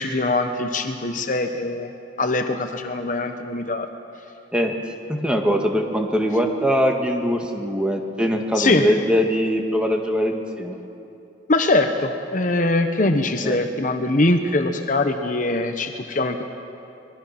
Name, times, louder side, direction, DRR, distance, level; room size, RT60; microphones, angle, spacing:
voice 1, 0.0-1.9 2.2-3.9 8.6-8.9 11.5-16.4, left 2 dB, 45° left, 6 dB, 1.0 m, -22 dB
voice 2, 5.1-10.8 13.4-13.6, equal, 5° right, 2 dB, 1.9 m, -22 dB
25.0 x 22.0 x 6.0 m, 2.8 s
head